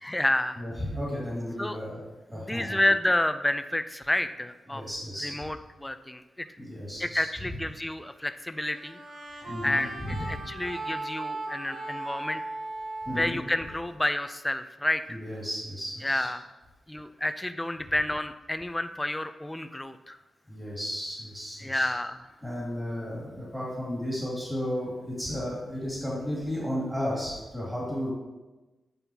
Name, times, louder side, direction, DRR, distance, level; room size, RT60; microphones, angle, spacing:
voice 1, 0.0-0.6 1.6-1.8 2.3-4.8 5.2-6.5 7.0-9.0 9.6-9.9 10.3-12.4 13.1-15.2 16.0-16.4 16.9-20.2 21.6-22.2, left 1 dB, 10° left, 10 dB, 0.3 m, -29 dB
voice 2, 0.6-2.0 2.3-2.8 4.7-5.5 6.6-7.3 9.4-10.4 13.0-13.4 15.1-16.3 20.5-21.9 22.4-28.1, equal, 10° right, -6 dB, 2.2 m, -34 dB
sound 1, 8.7-14.2, right 2 dB, 70° right, 1.8 m, -38 dB
9.2 x 5.4 x 2.8 m, 1.1 s
wide cardioid pair, 130°, 0 cm